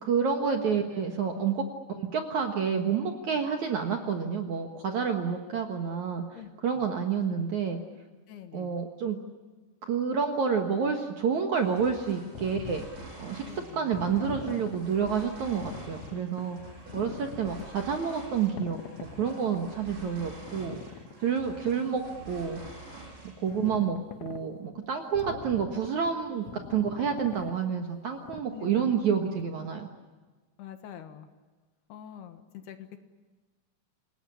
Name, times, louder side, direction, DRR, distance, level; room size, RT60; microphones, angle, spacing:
voice 1, 0.0-1.6 2.0-7.8 8.5-9.2 9.8-12.8 13.2-16.6 16.9-18.8 19.1-20.8 21.2-22.0 22.3-22.6 23.4-29.9, right 6 dB, 60° right, 4 dB, 2.2 m, -29 dB
voice 2, 8.3-8.7 13.4-13.9 23.5-23.9 24.7-24.8 25.2-25.4 28.5-28.9 30.6-31.3 31.9-33.0, left 10 dB, 70° left, 8 dB, 3.3 m, -45 dB
sound 1, 11.5-23.8, right 2 dB, 80° right, 8.7 m, -47 dB
sound 2, 12.3-13.0 13.9-14.8 15.2-15.3 15.6-16.4 16.9-17.7 18.6-19.6 20.4-21.1 21.7-21.8 22.5-22.8 23.5-24.4 25.1-26.1 26.5-27.5 28.0-28.1 28.3-28.4, left 7 dB, 90° left, 1.5 m, -43 dB
27.5 x 18.5 x 10.0 m, 1.3 s
omnidirectional pair, 5.1 m